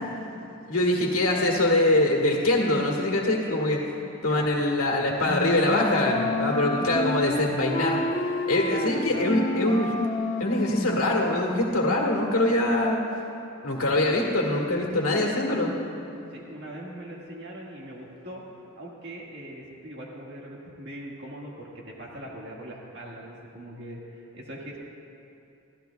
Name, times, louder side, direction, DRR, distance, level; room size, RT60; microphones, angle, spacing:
voice 1, 0.6-8.0 8.5-9.9 10.4-13.0 13.6-15.7, left 1 dB, 90° left, -1 dB, 1.7 m, -24 dB
Wind instrument woodwind instrument, 5.2-11.4, left 1 dB, 35° left, 0.6 m, -30 dB
voice 2, 5.6-6.4 6.7-7.0 8.7-9.3 16.3-18.4 18.8-24.8, right 1 dB, 50° right, -3 dB, 1.7 m, -41 dB
25.0 x 15.0 x 2.3 m, 2.9 s
head